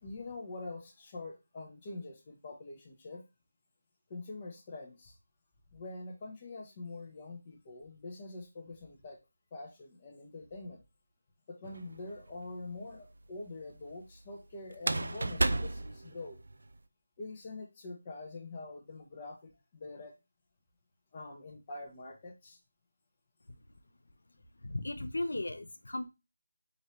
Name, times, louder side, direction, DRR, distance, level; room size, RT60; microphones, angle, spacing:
voice 1, 0.0-3.2 4.1-5.2 5.7-9.2 9.5-10.8 11.5-16.4 17.2-20.1 21.1-22.6, left 2 dB, 25° left, 1 dB, 0.9 m, -45 dB
sound 1, 11.6-12.3 14.7-16.7, right 2 dB, 65° right, 0.4 m, -33 dB
voice 2, 24.6-26.1, left 2 dB, 80° left, 10 dB, 0.6 m, -36 dB
4.5 x 2.7 x 3.1 m, 0.26 s
figure-of-eight pair, 165°, 0 cm